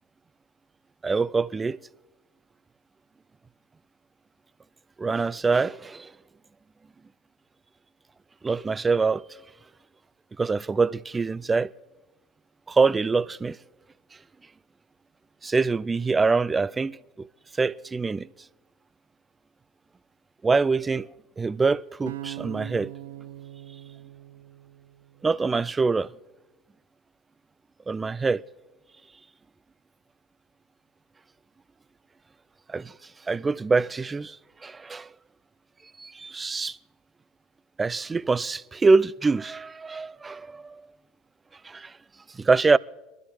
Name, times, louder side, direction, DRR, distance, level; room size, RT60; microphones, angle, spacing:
voice 1, 1.0-1.8 5.0-6.1 8.4-9.3 10.4-11.7 12.7-13.6 15.4-17.3 17.6-18.3 20.4-21.1 21.4-22.9 25.2-26.1 27.9-28.4 32.7-32.9 33.3-34.4 34.6-35.1 36.0-36.8 37.8-40.8 41.6-41.9 42.3-42.8, right 4 dB, 20° right, 0.4 m, -24 dB
sound 1, 22.1-25.2, right 15 dB, 80° right, 0.5 m, -41 dB
24.0 x 13.0 x 3.2 m
hypercardioid pair, 75°, 0 cm